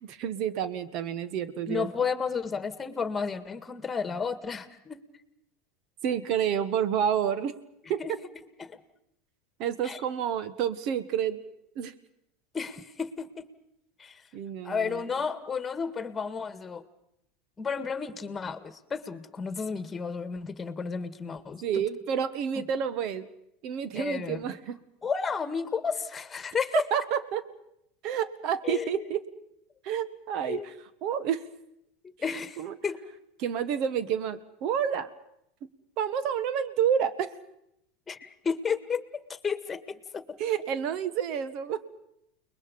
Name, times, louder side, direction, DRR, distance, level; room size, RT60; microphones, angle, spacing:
voice 1, 0.0-1.9 6.0-7.5 7.9-8.2 9.6-11.4 11.7-11.9 14.3-15.0 21.6-23.3 23.6-24.8 26.9-27.4 28.0-29.2 29.8-30.7 31.0-31.4 32.6-32.8 33.4-35.1 36.0-37.3 40.4-41.8, right 8 dB, 55° right, 15 dB, 1.4 m, -29 dB
voice 2, 1.7-5.0 8.0-8.1 8.6-8.8 9.8-10.0 12.5-13.5 14.0-14.2 14.6-16.8 17.6-21.6 23.9-24.4 25.0-26.8 28.6-29.0 30.5-30.7 32.0-33.0 38.1-39.0 39.4-40.2, left 5 dB, 20° left, 12 dB, 1.9 m, -32 dB
29.5 x 21.0 x 5.4 m, 0.78 s
hypercardioid pair, 95°, 0 cm